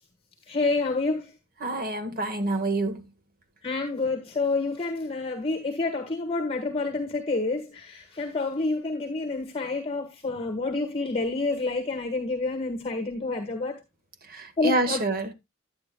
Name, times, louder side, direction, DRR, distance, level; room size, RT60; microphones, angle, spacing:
voice 1, 0.5-1.3 3.6-13.7 14.6-15.0, left 3 dB, 25° left, 1.5 m, -28 dB
voice 2, 1.6-3.0 14.3-15.3, right 2 dB, 40° right, 1.4 m, -27 dB
10.5 x 9.3 x 2.2 m
head